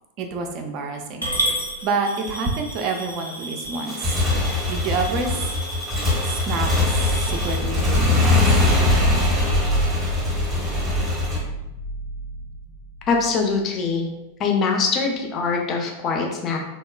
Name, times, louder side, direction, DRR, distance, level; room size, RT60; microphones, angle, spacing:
voice 1, 0.2-4.2 4.7-5.5 6.3-7.0 7.3-8.5 8.8-8.9, right 3 dB, 40° right, 4 dB, 0.3 m, -28 dB
Coin (dropping) / Glass, 1.2-7.6, right 1 dB, 85° right, 0.6 m, -31 dB
Motorcycle / Engine, 3.7-11.4, left 2 dB, 15° right, 0.7 m, -22 dB
sound 1, 6.9-13.6, equal, 90° left, 0.5 m, -28 dB
voice 2, 13.1-14.1 14.4-16.6, left 4 dB, 30° left, 1 dB, 0.4 m, -23 dB
2.9 x 2.0 x 2.2 m, 0.96 s
figure-of-eight pair, 90°, 0 cm